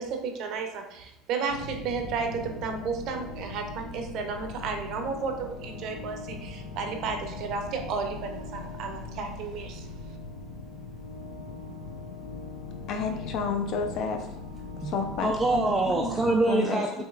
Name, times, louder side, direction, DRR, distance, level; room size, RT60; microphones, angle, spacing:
voice 1, 0.0-9.9, right 5 dB, 50° right, 5 dB, 0.6 m, -33 dB
sound 1, 1.5-16.4, left 3 dB, 85° left, 0.6 m, -40 dB
voice 2, 12.9-14.2 14.9-15.7 16.5-16.8, left 5 dB, 45° left, 5 dB, 0.5 m, -30 dB
voice 3, 14.8-17.0, right 2 dB, 15° right, 0 dB, 0.3 m, -26 dB
6.3 x 2.9 x 2.4 m, 0.85 s
cardioid pair, 160°, 0 cm